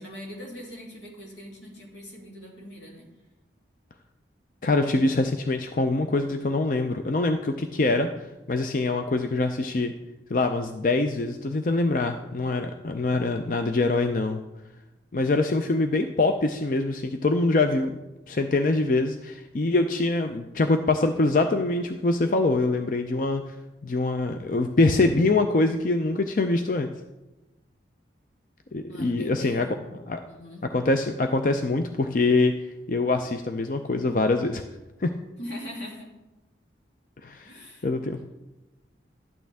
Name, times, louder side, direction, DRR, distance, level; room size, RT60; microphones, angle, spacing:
voice 1, 0.0-3.0 28.9-29.8 30.3-30.6 35.4-36.1 37.4-37.9, equal, 85° left, -2 dB, 2.8 m, -41 dB
voice 2, 4.6-8.1 8.5-9.9 10.3-14.4 15.1-17.9 18.3-23.6 23.8-26.9 28.7-29.7 30.1-30.2 30.7-32.5 32.9-34.6 35.0-35.1 37.2-37.5 37.8-38.2, left 2 dB, 45° left, 6 dB, 0.5 m, -24 dB
12.0 x 8.8 x 3.5 m, 1.0 s
head